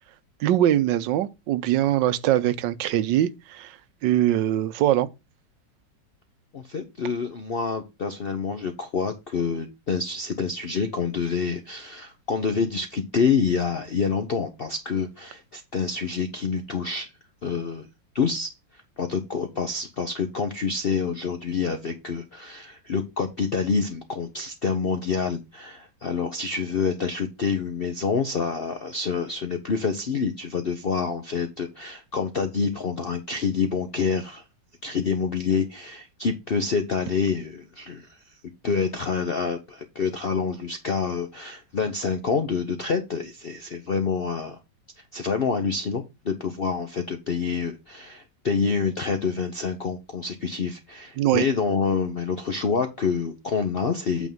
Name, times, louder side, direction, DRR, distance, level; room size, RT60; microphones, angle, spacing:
voice 1, 0.4-3.8 4.0-5.1 51.2-51.4, right 12 dB, 80° right, 1.3 m, -22 dB
voice 2, 6.5-17.1 17.4-17.9 18.1-18.5 19.0-34.4 34.8-38.1 38.6-44.6 45.0-54.3, left 5 dB, 60° left, 0.5 m, -27 dB
8.5 x 3.6 x 5.3 m
omnidirectional pair, 2.0 m